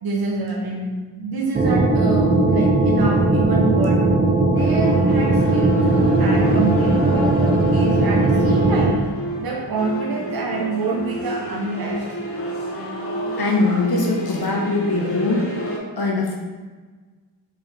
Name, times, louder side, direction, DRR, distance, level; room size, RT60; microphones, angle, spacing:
voice 1, 0.0-4.0 4.5-9.0 9.4-12.0, right 3 dB, 60° right, -2 dB, 0.7 m, -27 dB
sound 1, 1.5-9.0, right 2 dB, 20° right, 0.4 m, -18 dB
sound 2, 4.6-15.8, equal, 30° left, 0.9 m, -30 dB
voice 2, 13.4-15.5 16.0-16.4, left 3 dB, 60° left, -1 dB, 1.0 m, -21 dB
3.6 x 3.0 x 3.3 m, 1.4 s
cardioid pair, 45°, 42 cm